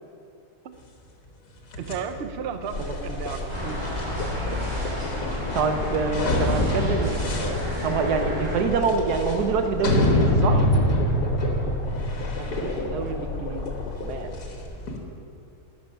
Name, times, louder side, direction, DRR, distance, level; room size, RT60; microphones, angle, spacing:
sound 1, 1.7-15.0, left 1 dB, 80° left, 2.0 m, -27 dB
voice 1, 1.8-3.9 10.5-11.0 11.3-11.8, right 7 dB, 55° right, 8 dB, 0.7 m, -34 dB
sound 2, 2.7-14.6, left 3 dB, 40° left, 0.9 m, -33 dB
sound 3, 3.5-8.6, left 1 dB, 15° right, 3.1 m, -31 dB
voice 2, 5.5-10.6 12.4-13.6 14.0-14.3, right 5 dB, 80° right, 6 dB, 1.4 m, -26 dB
12.5 x 8.0 x 5.6 m, 2.6 s
omnidirectional pair, 1.7 m